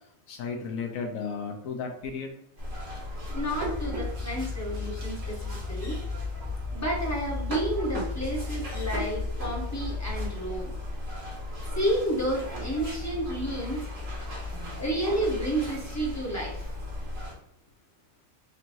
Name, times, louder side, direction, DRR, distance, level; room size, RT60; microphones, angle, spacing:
voice 1, 0.3-2.3, left 5 dB, 80° left, 3 dB, 1.0 m, -34 dB
sound 1, 2.6-17.3, left 2 dB, 80° right, 1.7 m, -34 dB
voice 2, 3.3-6.0 6.7-10.7 11.7-13.8 14.8-16.6, right 1 dB, 15° left, -3 dB, 0.7 m, -31 dB
4.5 x 3.0 x 2.6 m, 0.74 s
omnidirectional pair, 1.5 m